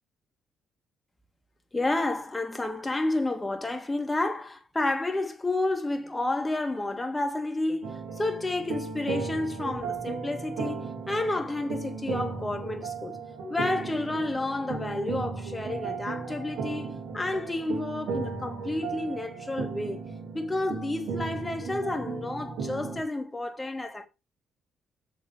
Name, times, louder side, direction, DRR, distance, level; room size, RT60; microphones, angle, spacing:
voice 1, 1.7-13.2 13.5-20.0 20.3-24.1, left 2 dB, 15° left, 2.0 m, -30 dB
sound 1, 7.8-23.0, right 5 dB, 85° right, 3.3 m, -36 dB
7.0 x 6.8 x 5.1 m
cardioid pair, 90°, 0 cm